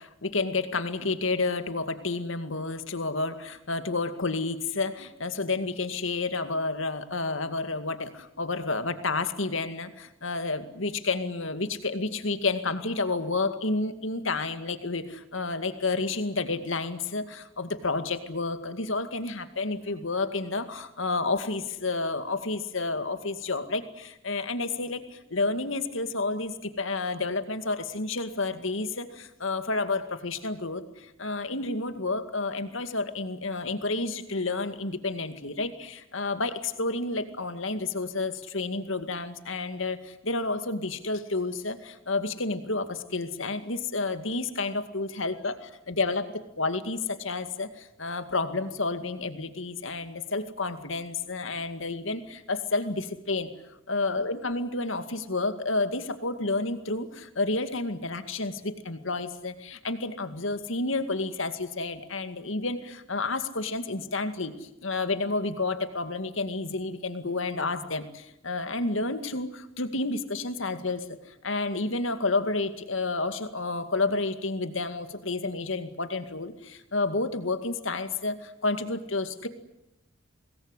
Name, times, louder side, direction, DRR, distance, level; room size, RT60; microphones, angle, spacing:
voice 1, 0.0-53.5 53.9-79.5, left 3 dB, 70° left, 9 dB, 2.2 m, -30 dB
25.5 x 20.5 x 9.9 m, 0.86 s
head